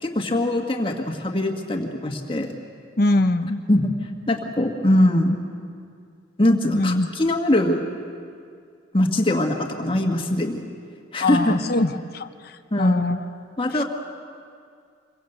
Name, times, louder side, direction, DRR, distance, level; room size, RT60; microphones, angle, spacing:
voice 1, 0.0-2.5 3.7-3.9 4.3-5.4 6.4-7.9 8.9-10.6 11.1-11.5 12.7-13.1 13.6-13.8, left 1 dB, 25° left, 2 dB, 1.7 m, -22 dB
voice 2, 3.0-3.6 6.7-7.1 11.2-13.3 13.7-13.8, left 2 dB, 50° left, 8 dB, 0.8 m, -22 dB
26.5 x 23.0 x 8.1 m, 2.2 s
head